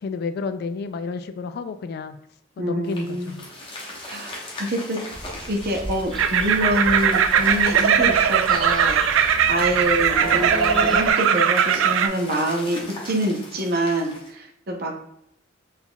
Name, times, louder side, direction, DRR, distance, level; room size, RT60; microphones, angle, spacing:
voice 1, 0.0-2.2 2.6-3.5, left 4 dB, 55° left, 11 dB, 0.3 m, -30 dB
voice 2, 2.6-3.4 4.1-5.0 5.5-14.9, right 1 dB, 50° right, 1 dB, 0.7 m, -26 dB
sound 1, 2.8-14.3, left 1 dB, 25° left, 1.0 m, -40 dB
sound 2, 5.1-11.1, equal, 5° left, 1.2 m, -34 dB
sound 3, 6.1-12.1, right 7 dB, 80° right, 0.3 m, -19 dB
4.0 x 4.0 x 2.2 m, 0.75 s
head